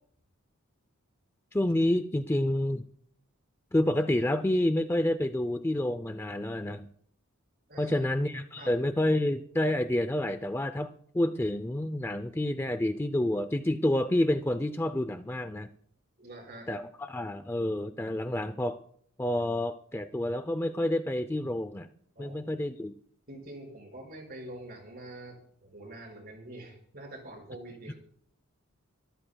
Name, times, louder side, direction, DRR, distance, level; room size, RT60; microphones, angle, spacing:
voice 1, 1.5-2.8 3.7-6.9 7.8-15.7 16.7-18.8 19.2-21.9 22.2-22.9, left 1 dB, 10° left, 9 dB, 0.4 m, -29 dB
voice 2, 7.7-8.1 8.6-8.7 16.2-16.7 22.2-22.5 23.3-28.0, right 1 dB, 45° right, 1 dB, 5.4 m, -45 dB
24.5 x 13.5 x 2.3 m, 0.63 s
head